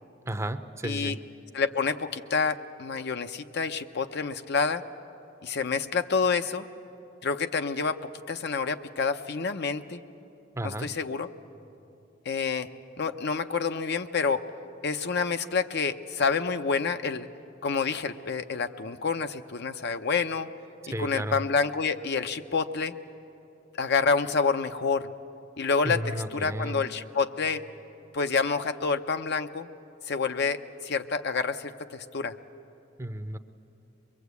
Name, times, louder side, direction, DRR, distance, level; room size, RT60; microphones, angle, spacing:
voice 1, 0.3-1.2 10.5-10.9 20.9-21.4 25.8-26.9 33.0-33.4, right 1 dB, 15° right, 9 dB, 0.6 m, -33 dB
voice 2, 0.8-1.2 1.5-4.8 5.4-6.7 7.2-10.0 10.6-11.3 12.2-12.7 13.0-14.5 14.8-17.3 17.6-20.5 21.0-22.9 23.8-25.1 25.6-27.6 28.1-29.7 30.1-32.3, left 5 dB, 60° left, 8 dB, 0.7 m, -28 dB
23.0 x 23.0 x 8.2 m, 2.8 s
head